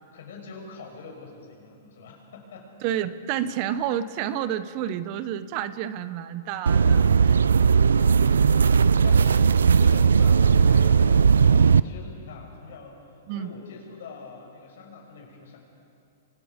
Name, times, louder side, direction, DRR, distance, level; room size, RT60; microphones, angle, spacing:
voice 1, 0.1-2.7 6.8-7.2 8.0-15.6, left 4 dB, 70° left, 1 dB, 6.2 m, -44 dB
voice 2, 2.8-7.0 13.3-13.5, right 10 dB, 45° right, 14 dB, 1.0 m, -29 dB
sound 1, 6.7-11.8, right 6 dB, 85° right, 0.5 m, -18 dB
28.0 x 24.0 x 5.3 m, 2.5 s
hypercardioid pair, 125°, 0 cm